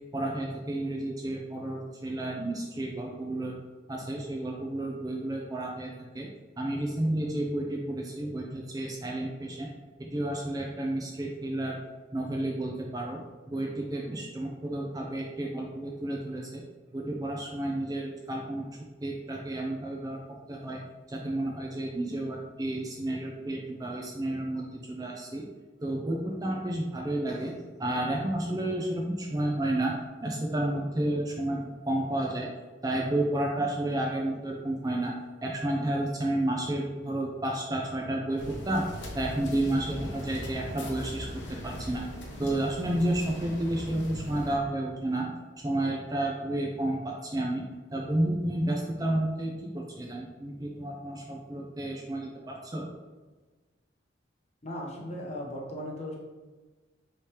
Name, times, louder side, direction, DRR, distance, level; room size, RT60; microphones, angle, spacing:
voice 1, 0.1-3.5 3.9-6.3 6.6-9.7 10.0-11.8 12.1-13.2 13.5-16.6 16.9-18.7 19.0-20.8 21.1-25.4 25.8-30.0 30.2-32.5 32.8-35.1 35.4-38.9 39.1-41.3 41.6-42.0 42.4-45.3 45.6-47.7 47.9-52.9, right 1 dB, 20° right, -1 dB, 0.4 m, -31 dB
sound 1, 38.4-44.6, left 1 dB, 70° left, 0.8 m, -40 dB
voice 2, 54.6-56.2, equal, 35° left, -2 dB, 0.7 m, -37 dB
5.0 x 3.1 x 2.9 m, 1.3 s
head